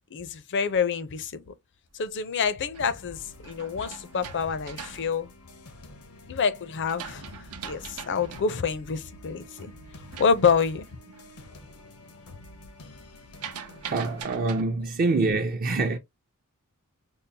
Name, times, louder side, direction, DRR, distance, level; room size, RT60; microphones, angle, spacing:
voice 1, 0.1-1.5 1.9-5.3 6.3-7.2 7.6-9.7 10.2-10.8, left 6 dB, 55° left, 0.5 m, -27 dB
sound 1, 2.2-6.0 6.5-11.4 11.7-12.1 12.4-14.6, right 7 dB, 85° right, 0.7 m, -43 dB
sound 2, 2.8-14.2, left 2 dB, 85° left, 0.8 m, -48 dB
voice 2, 13.9-16.0, right 3 dB, 40° right, 0.5 m, -25 dB
5.3 x 2.0 x 2.7 m
head